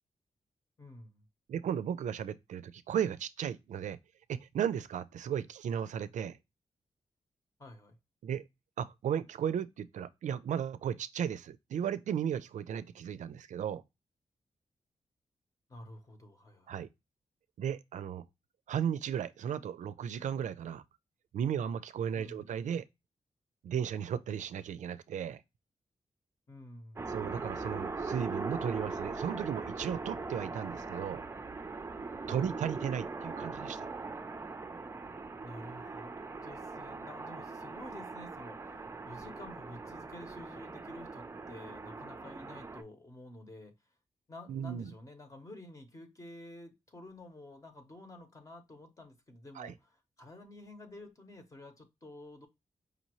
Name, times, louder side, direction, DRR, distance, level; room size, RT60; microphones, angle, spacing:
voice 1, 0.8-1.2 7.6-8.0 15.7-16.7 22.1-22.5 26.5-27.1 32.3-32.6 35.4-43.7 44.3-52.5, left 1 dB, 25° left, 0.9 m, -50 dB
voice 2, 1.5-4.0 4.3-6.4 8.2-8.4 8.8-13.8 16.7-16.9 17.6-18.2 18.7-20.8 21.3-22.9 23.6-25.4 27.1-31.2 32.3-33.9 44.5-44.9 49.6-49.7, right 8 dB, 85° right, 0.4 m, -35 dB
sound 1, 27.0-42.8, right 3 dB, 20° right, 0.4 m, -41 dB
5.0 x 2.7 x 2.9 m
wide cardioid pair, 140°, 12 cm